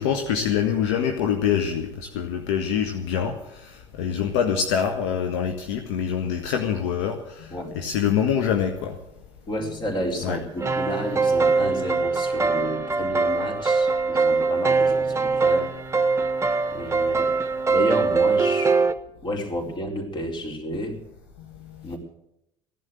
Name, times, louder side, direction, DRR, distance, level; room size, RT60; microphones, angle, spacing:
voice 1, 0.0-8.9 10.2-10.4 21.8-21.9, left 8 dB, 70° left, 6 dB, 1.4 m, -25 dB
voice 2, 9.5-15.7 16.7-17.3 17.7-18.8 19.2-21.0 21.8-22.0, equal, 30° left, 1 dB, 4.6 m, -31 dB
sound 1, 10.6-18.9, right 4 dB, 20° right, 1.2 m, -22 dB
15.5 x 11.0 x 7.8 m, 0.81 s
hypercardioid pair, 70°, 15 cm